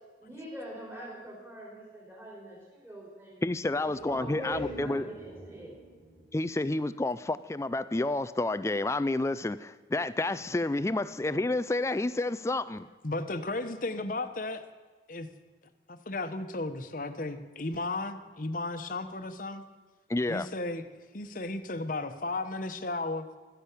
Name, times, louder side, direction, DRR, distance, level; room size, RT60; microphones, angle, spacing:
voice 1, 0.2-3.4 3.8-5.7, equal, 15° right, -4 dB, 3.5 m, -43 dB
voice 2, 3.4-5.0 6.3-12.9 20.1-20.5, left 2 dB, 15° left, 14 dB, 0.4 m, -30 dB
sound 1, 3.7-7.4 7.8-7.9, right 2 dB, 50° right, 5.0 m, -46 dB
voice 3, 13.0-14.6 15.1-15.3 15.9-19.6 20.3-20.8 21.1-23.3, left 2 dB, 50° left, 9 dB, 1.1 m, -34 dB
13.5 x 10.5 x 8.3 m, 1.3 s
head